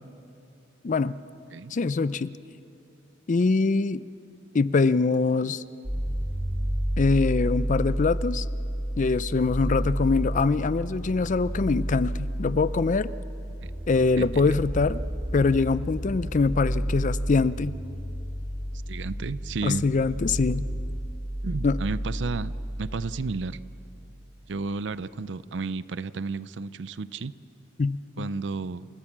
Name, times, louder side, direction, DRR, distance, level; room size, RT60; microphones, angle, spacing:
voice 1, 0.8-1.2 1.7-2.3 3.3-4.0 4.5-5.6 7.0-8.5 9.0-13.1 13.9-15.0 15.3-17.7 19.6-20.7 21.6-21.8 27.8-28.3, left 4 dB, 45° left, 17 dB, 0.4 m, -24 dB
sound 1, 5.8-23.8, equal, 5° right, 3.2 m, -31 dB
voice 2, 18.9-19.9 21.4-23.6 24.5-27.3 28.2-28.9, right 4 dB, 70° right, 17 dB, 0.5 m, -32 dB
28.5 x 15.0 x 7.3 m, 2.7 s
head